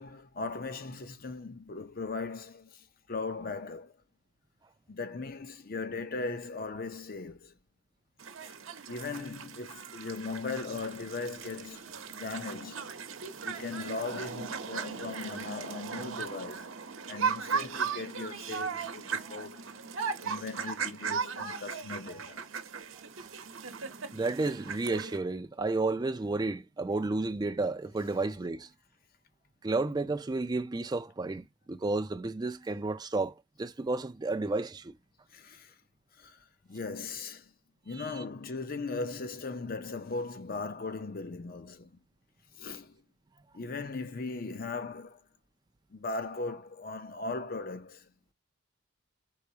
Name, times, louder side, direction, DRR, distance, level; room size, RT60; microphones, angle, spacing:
voice 1, 0.0-3.9 4.9-7.5 8.5-8.6 8.9-12.9 13.4-16.7 17.1-19.6 20.2-22.4 35.3-35.7 36.2-36.4 36.7-37.5 37.9-42.0 42.6-43.0 43.5-45.2 45.9-48.1, left 3 dB, 45° left, 0.6 m, -38 dB
sound 1, 8.2-25.2, right 6 dB, 75° right, 0.9 m, -37 dB
voice 2, 24.1-28.7 29.6-34.9 37.9-38.1, right 3 dB, 20° right, 0.4 m, -32 dB
4.7 x 4.0 x 2.8 m
head